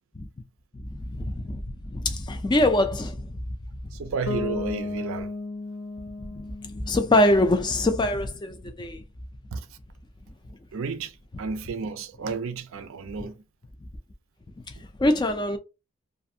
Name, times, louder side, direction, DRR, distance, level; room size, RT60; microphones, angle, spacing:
voice 1, 0.7-3.4 6.2-6.5 6.8-9.0 15.0-15.6, left 1 dB, 20° left, 0.4 m, -24 dB
voice 2, 3.9-5.3 9.5-9.7 10.7-13.4, right 5 dB, 65° right, 0.4 m, -32 dB
Bass guitar, 4.3-8.1, left 3 dB, 75° left, 0.5 m, -35 dB
2.5 x 2.5 x 2.7 m
head